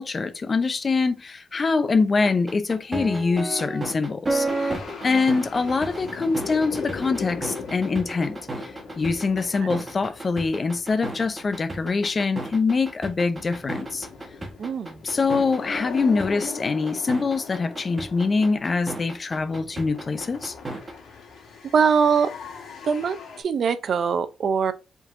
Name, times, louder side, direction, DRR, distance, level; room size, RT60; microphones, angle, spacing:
voice 1, 0.0-14.1 15.0-20.5, left 4 dB, 35° left, 0.5 m, -24 dB
sound 1, 2.2-20.9, right 2 dB, 20° right, 1.3 m, -32 dB
sound 2, 4.5-12.3 12.6-23.4, left 5 dB, 80° left, 1.5 m, -39 dB
voice 2, 14.6-15.0 21.7-22.3 22.8-24.7, right 6 dB, 60° right, 0.5 m, -23 dB
5.3 x 3.8 x 2.6 m
cardioid pair, 110°, 0 cm